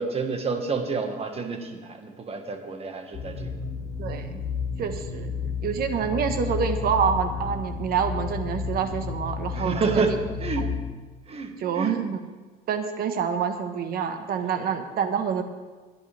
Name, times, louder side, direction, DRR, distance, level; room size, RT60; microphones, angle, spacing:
voice 1, 0.0-3.5 9.5-10.7 11.3-12.0, right 4 dB, 35° right, 5 dB, 1.8 m, -29 dB
sound 1, 3.1-10.8, left 5 dB, 55° left, 3.8 m, -32 dB
voice 2, 4.0-4.4 4.8-5.3 5.6-10.2 10.6-10.7 11.6-12.2 12.7-15.4, right 7 dB, 65° right, 7 dB, 1.5 m, -27 dB
21.5 x 10.5 x 3.6 m, 1.3 s
cardioid pair, 110°, 17 cm